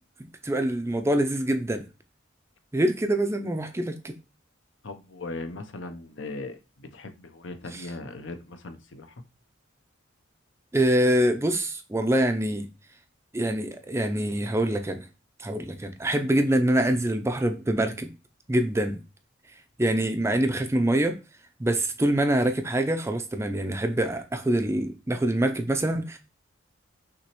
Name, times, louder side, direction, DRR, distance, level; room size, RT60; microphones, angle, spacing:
voice 1, 0.2-1.8 2.7-4.1 7.7-7.9 10.7-12.7 13.3-15.1 15.4-18.1 18.5-19.0 19.8-21.2 21.6-26.2, right 1 dB, 15° right, 0.4 m, -25 dB
voice 2, 4.8-9.1, left 2 dB, 65° left, 0.7 m, -39 dB
6.1 x 2.9 x 2.9 m
head